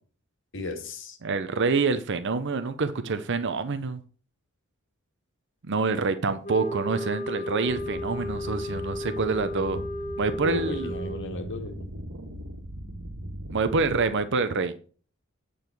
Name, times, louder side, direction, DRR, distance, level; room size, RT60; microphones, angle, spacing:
voice 1, 0.5-1.2 10.4-11.9, left 2 dB, 60° left, 5 dB, 1.9 m, -34 dB
voice 2, 1.2-4.0 5.6-9.8 10.2-10.9 13.5-14.7, right 4 dB, 60° right, 10 dB, 0.7 m, -26 dB
sound 1, 6.4-11.3, left 1 dB, 35° left, 1.6 m, -34 dB
sound 2, 7.6-14.1, equal, 80° right, 1.8 m, -39 dB
9.2 x 5.0 x 6.0 m, 0.40 s
head